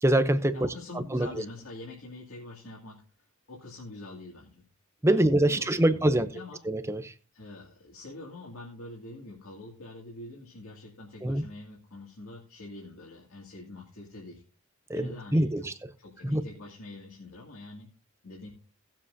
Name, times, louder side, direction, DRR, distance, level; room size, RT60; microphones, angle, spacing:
voice 1, 0.0-0.6 1.1-1.3 5.0-6.3 6.6-7.1 11.2-11.4 14.9-15.7 16.2-16.4, right 1 dB, 10° right, 0.7 m, -24 dB
voice 2, 0.5-3.0 3.5-4.6 5.0-6.6 7.3-14.4 14.9-15.5 16.0-17.9 18.2-18.5, left 2 dB, 70° left, 2.5 m, -45 dB
18.5 x 7.4 x 2.7 m
head